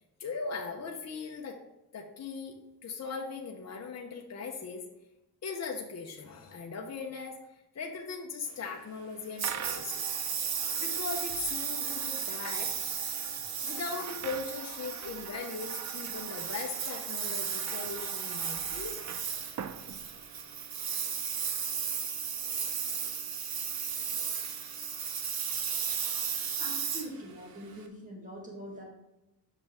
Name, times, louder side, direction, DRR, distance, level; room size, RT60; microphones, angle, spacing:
voice 1, 0.2-1.6 1.9-2.6 2.8-4.8 5.4-7.4 7.7-10.0 10.8-13.1 13.6-19.0, left 4 dB, 40° left, 1 dB, 0.9 m, -39 dB
sound 1, 9.4-20.6, right 8 dB, 45° right, 0.4 m, -45 dB
Engine, 9.4-27.8, right 7 dB, 65° right, 0.9 m, -35 dB
voice 2, 26.6-28.8, equal, 20° right, -2 dB, 2.4 m, -43 dB
8.1 x 6.0 x 3.5 m, 0.93 s
wide cardioid pair, 135°, 40 cm